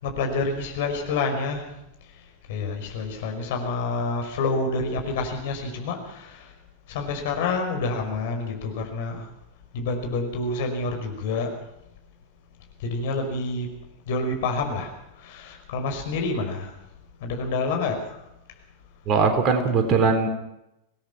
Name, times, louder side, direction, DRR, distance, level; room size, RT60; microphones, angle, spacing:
voice 1, 0.0-1.7 2.5-6.5 6.9-9.3 9.7-11.5 12.8-13.7 14.1-14.9 15.2-16.7 17.2-18.2, left 3 dB, 55° left, 3 dB, 5.4 m, -28 dB
voice 2, 19.1-20.3, right 4 dB, 35° right, 6 dB, 3.6 m, -20 dB
25.0 x 18.5 x 5.9 m, 0.86 s
figure-of-eight pair, 90°, 0 cm